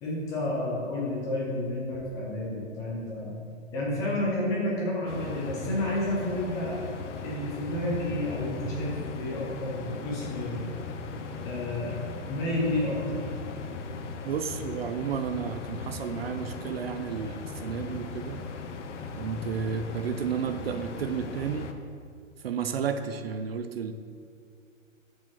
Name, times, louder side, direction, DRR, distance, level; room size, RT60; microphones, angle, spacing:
voice 1, 0.0-3.3 3.7-6.9 7.2-10.7 11.4-11.9 12.3-13.3, left 1 dB, 10° left, -4 dB, 0.5 m, -30 dB
sound 1, 5.1-21.7, left 4 dB, 65° left, 0.8 m, -38 dB
voice 2, 14.2-18.4 19.2-21.7 22.4-23.9, right 7 dB, 50° right, 9 dB, 0.5 m, -32 dB
7.2 x 5.3 x 6.0 m, 2.2 s
hypercardioid pair, 155°, 40 cm